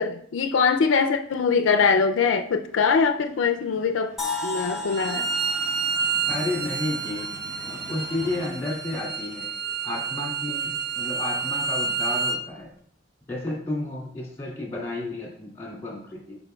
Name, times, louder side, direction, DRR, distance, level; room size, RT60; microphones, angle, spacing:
voice 1, 0.0-4.2 4.4-5.3, left 5 dB, 80° left, 6 dB, 0.4 m, -22 dB
sound 1, 2.1-8.5, right 1 dB, 75° right, 1.4 m, -47 dB
sound 2, 4.2-8.1, left 3 dB, ahead, 1.4 m, -35 dB
Bowed string instrument, 4.9-12.4, right 4 dB, 55° right, 0.5 m, -29 dB
voice 2, 6.3-7.3 7.6-9.5 9.8-12.7 13.3-16.4, left 2 dB, 15° left, -2 dB, 2.4 m, -32 dB
12.0 x 4.9 x 2.3 m, 0.65 s
head